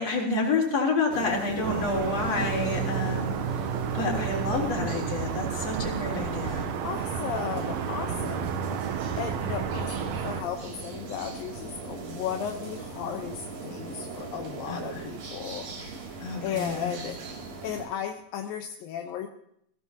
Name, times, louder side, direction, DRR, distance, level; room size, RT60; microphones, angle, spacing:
voice 1, 0.0-6.7 14.7-15.0 16.2-16.9, left 3 dB, 50° left, -1 dB, 4.7 m, -29 dB
sound 1, 1.1-17.9, right 3 dB, 50° right, 3.7 m, -38 dB
sound 2, 1.6-10.4, right 8 dB, 70° right, 1.9 m, -32 dB
voice 2, 6.8-8.8 9.1-16.1 16.4-17.2 17.6-19.3, left 8 dB, 80° left, 4 dB, 2.7 m, -35 dB
22.5 x 17.0 x 2.9 m, 0.72 s
omnidirectional pair, 4.1 m